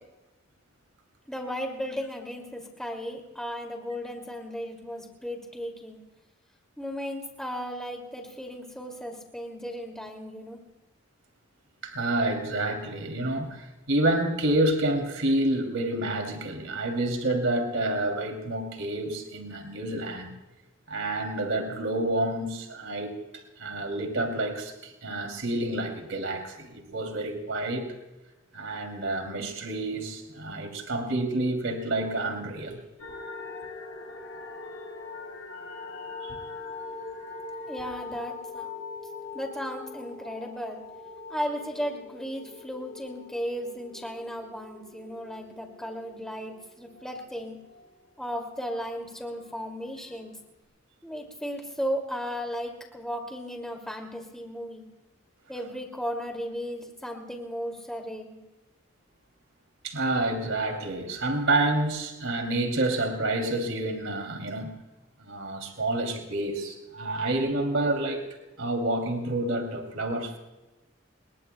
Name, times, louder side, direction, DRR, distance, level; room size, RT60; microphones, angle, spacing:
voice 1, 1.3-6.0 6.8-10.6 37.7-38.7 39.3-40.8 41.3-47.6 48.2-50.3 51.0-54.9 55.5-58.4, equal, 5° left, 2 dB, 2.5 m, -35 dB
voice 2, 11.8-20.3 20.9-23.2 23.6-27.9 28.5-32.8 36.2-36.4 59.8-64.7 65.2-68.2 68.6-70.4, right 2 dB, 70° right, 3 dB, 2.9 m, -28 dB
sound 1, 33.0-47.9 48.2-49.6 50.1-50.2, left 3 dB, 80° left, 3.7 m, -42 dB
29.0 x 21.5 x 2.3 m, 1.1 s
head